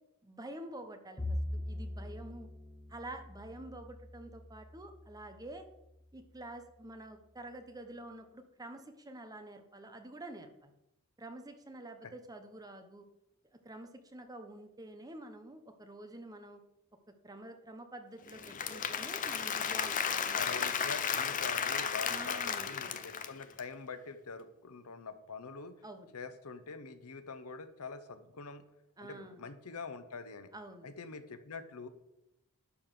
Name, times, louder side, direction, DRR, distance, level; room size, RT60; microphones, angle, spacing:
voice 1, 0.2-2.5 2.9-5.7 6.1-10.7 11.2-13.1 13.5-16.6 17.1-20.4 20.7-20.8 22.1-22.9 25.8-26.1 29.0-29.4 30.5-30.9, right 1 dB, 15° right, 6 dB, 0.9 m, -48 dB
Bowed string instrument, 1.2-5.6, left 1 dB, 20° left, 1.1 m, -42 dB
Applause / Crowd, 18.3-23.6, left 7 dB, 35° left, 0.6 m, -34 dB
voice 2, 20.4-25.8 26.1-28.6 29.0-30.5 30.8-31.9, left 4 dB, 85° left, 10 dB, 0.8 m, -45 dB
11.5 x 3.9 x 6.6 m, 0.87 s
head